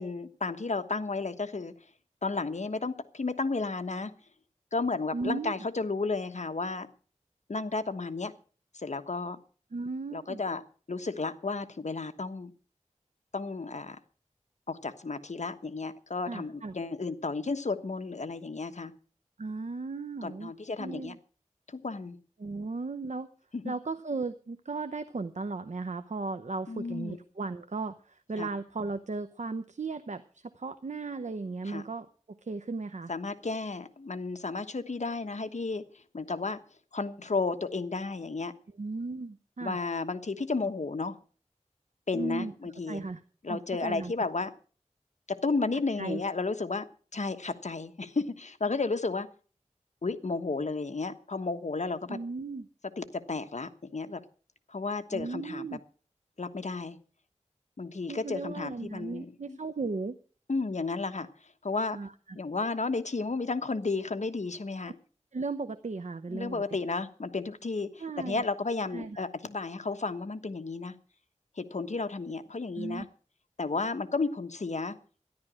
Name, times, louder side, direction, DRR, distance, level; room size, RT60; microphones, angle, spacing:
voice 1, 0.0-1.7 2.2-4.1 4.7-6.9 7.5-8.3 8.7-9.4 10.1-10.6 10.9-12.5 13.3-14.0 14.7-18.9 20.2-21.1 21.7-22.2 23.5-23.7 26.7-27.2 28.4-28.5 31.6-31.8 33.1-35.8 36.1-36.6 36.9-38.5 39.6-41.2 42.1-43.0 43.4-44.5 45.3-46.9 47.1-49.3 50.0-52.2 53.0-54.2 54.7-55.7 56.4-57.0 57.8-59.6 60.5-61.3 61.6-62.0 62.3-65.0 66.3-71.0 71.6-73.1 73.6-75.0, left 3 dB, 65° left, 8 dB, 1.3 m, -33 dB
voice 2, 5.1-5.5 9.7-10.4 16.2-16.7 19.4-20.5 20.8-21.2 22.4-23.3 23.6-33.1 38.8-39.8 42.1-42.5 42.9-43.2 43.5-44.1 46.0-46.2 52.1-52.7 55.1-55.8 58.1-60.2 61.9-62.4 65.3-66.6 68.0-68.4 68.9-69.3 72.8-73.1, right 3 dB, 65° right, 11 dB, 0.8 m, -36 dB
13.5 x 11.0 x 6.3 m, 0.40 s
wide cardioid pair, 65°, 13 cm